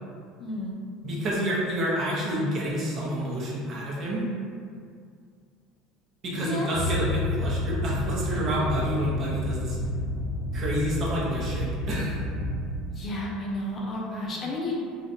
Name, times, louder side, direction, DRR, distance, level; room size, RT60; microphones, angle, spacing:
voice 1, 0.4-0.7 6.3-6.9 12.9-14.8, left 1 dB, 40° left, -3 dB, 0.5 m, -32 dB
voice 2, 1.0-4.2 6.2-9.8 10.5-12.2, equal, 50° right, -5 dB, 0.6 m, -29 dB
sound 1, 6.7-12.7, left 1 dB, 10° right, 0.7 m, -30 dB
2.4 x 2.1 x 2.7 m, 2.2 s
hypercardioid pair, 75°, 0 cm